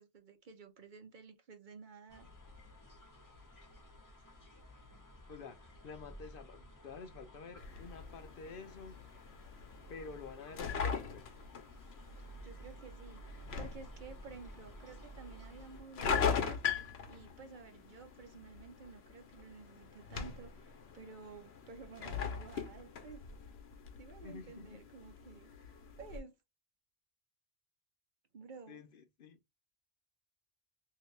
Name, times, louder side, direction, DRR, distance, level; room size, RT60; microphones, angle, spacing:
voice 1, 0.0-2.3 12.4-16.6 17.1-23.2 24.0-25.5 26.0-26.3 28.3-28.8, right 5 dB, 55° right, 0.8 m, -53 dB
sound 1, 2.1-15.8, right 1 dB, 20° left, 0.7 m, -54 dB
voice 2, 5.3-9.0 9.9-11.3 24.2-24.8 28.7-29.4, left 4 dB, 65° left, 0.8 m, -50 dB
sound 2, 7.6-26.2, left 6 dB, 90° left, 1.0 m, -41 dB
3.0 x 2.8 x 3.2 m
omnidirectional pair, 1.0 m